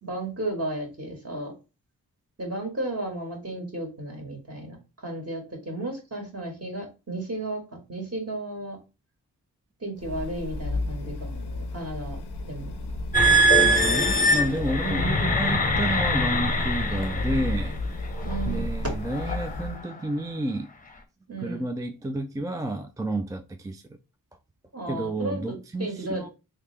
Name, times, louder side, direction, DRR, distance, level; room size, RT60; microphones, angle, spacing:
voice 1, 0.0-1.5 2.4-8.8 9.8-12.7 14.8-15.3 18.2-18.7 21.3-21.7 24.7-26.3, right 2 dB, 35° right, 1.7 m, -34 dB
sound 1, 10.0-19.8, left 2 dB, 85° left, 0.6 m, -32 dB
sound 2, 13.1-17.7 18.3-18.6 19.2-19.5, right 1 dB, 20° left, 0.7 m, -22 dB
voice 2, 13.5-17.8 18.5-20.7 21.4-23.8 24.9-26.3, right 1 dB, 10° right, 0.3 m, -30 dB
3.3 x 2.8 x 3.3 m
cardioid pair, 50°, 40 cm